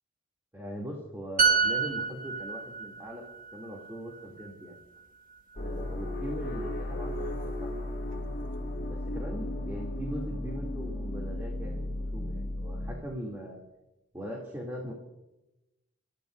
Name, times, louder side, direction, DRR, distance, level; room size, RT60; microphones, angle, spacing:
voice 1, 0.5-3.2 3.5-4.7 5.6-8.2 8.8-13.6 14.1-14.9, equal, 15° right, -3 dB, 2.8 m, -41 dB
sound 1, 1.4-5.0 5.3-5.5, right 5 dB, 45° right, 1.5 m, -29 dB
sound 2, 5.6-13.0, left 1 dB, 50° left, 2.0 m, -35 dB
29.0 x 15.5 x 2.6 m, 0.95 s
head